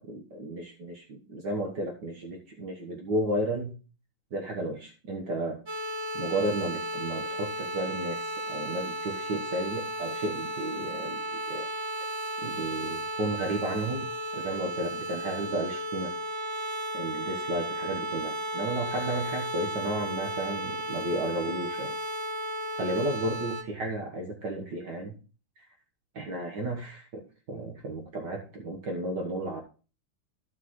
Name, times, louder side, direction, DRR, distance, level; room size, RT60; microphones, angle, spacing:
voice 1, 0.0-3.8 4.3-5.6 6.1-11.7 12.4-14.1 14.3-16.1 16.9-22.0 22.8-25.1 25.6-25.7 26.1-29.6, right 1 dB, 55° right, 1 dB, 1.9 m, -33 dB
sound 1, 5.7-23.6, right 1 dB, 35° right, 1.8 m, -34 dB
14.0 x 6.0 x 3.1 m, 0.35 s
omnidirectional pair, 2.4 m